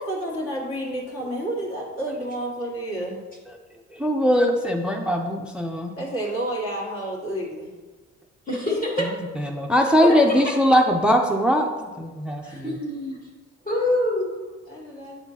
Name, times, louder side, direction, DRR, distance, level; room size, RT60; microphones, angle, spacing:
voice 1, 0.0-3.2 6.0-7.7 8.7-9.0 10.0-10.1 12.4-12.7 14.5-15.2, right 1 dB, 45° left, -3 dB, 1.8 m, -30 dB
voice 2, 3.9-5.9 9.4-12.7, equal, 5° right, 4 dB, 0.4 m, -21 dB
voice 3, 8.5-9.0 10.0-10.3 12.6-13.3 13.6-14.3, left 1 dB, 25° left, -4 dB, 1.2 m, -25 dB
7.8 x 4.3 x 2.8 m, 1.3 s
cardioid pair, 90°, 30 cm